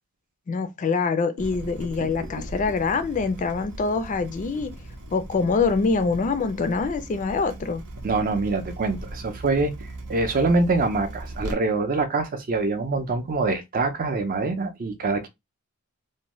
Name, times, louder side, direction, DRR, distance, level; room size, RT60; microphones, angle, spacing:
voice 1, 0.5-4.7 5.1-7.8, left 4 dB, 35° left, 0.3 m, -25 dB
Water tap faucet / Drip, 1.4-11.5, right 1 dB, 85° right, 0.7 m, -38 dB
voice 2, 8.0-9.7 10.1-15.3, right 3 dB, 40° right, 0.4 m, -24 dB
2.6 x 2.1 x 3.0 m
head